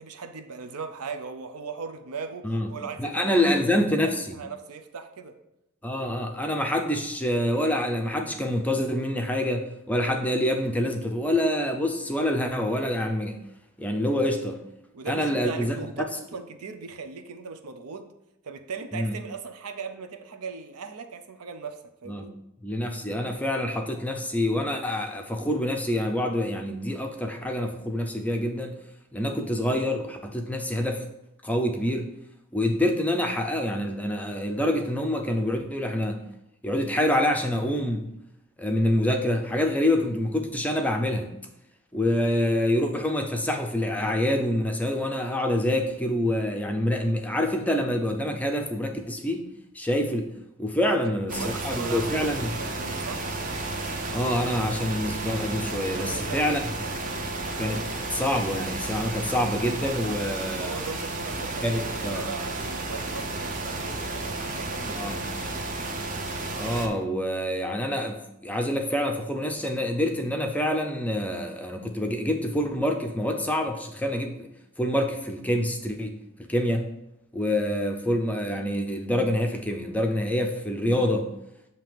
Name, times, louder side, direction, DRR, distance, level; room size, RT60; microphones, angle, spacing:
voice 1, 0.0-5.4 14.9-18.1 18.4-22.3 50.8-51.0 51.3-52.3 52.6-53.2 56.0-56.5 56.8-57.0 60.6-65.6, right 5 dB, 80° right, 8 dB, 0.6 m, -38 dB
voice 2, 3.0-4.2 5.8-13.4 13.8-14.6 15.1-15.7 18.9-19.2 22.1-22.3 22.6-28.7 29.1-31.0 31.4-32.1 32.5-36.2 36.6-38.1 38.6-41.3 41.9-49.4 49.7-50.3 50.6-52.6 54.1-56.6 57.5-57.8 58.1-60.8 61.6-62.2 64.9-65.3 66.6-74.5 74.8-76.2 76.5-76.9 77.3-81.3, left 1 dB, 5° left, 4 dB, 0.5 m, -26 dB
sound 1, 51.3-66.9, right 2 dB, 35° right, 0.6 m, -32 dB
7.5 x 2.8 x 5.1 m, 0.85 s
head